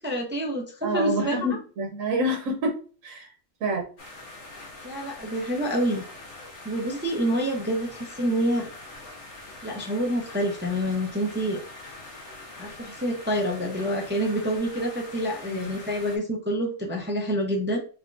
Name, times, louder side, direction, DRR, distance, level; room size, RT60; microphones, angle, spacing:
voice 1, 0.0-1.4 4.8-6.0 6.6-8.7 9.6-11.6 12.6-17.8, equal, 15° right, -1 dB, 0.5 m, -27 dB
voice 2, 0.8-3.3 3.6-3.8 15.5-15.6, right 1 dB, 85° right, 2 dB, 1.1 m, -27 dB
sound 1, 4.0-16.2, left 2 dB, 65° left, 1.4 m, -43 dB
3.5 x 3.5 x 2.5 m, 0.39 s
omnidirectional pair, 1.3 m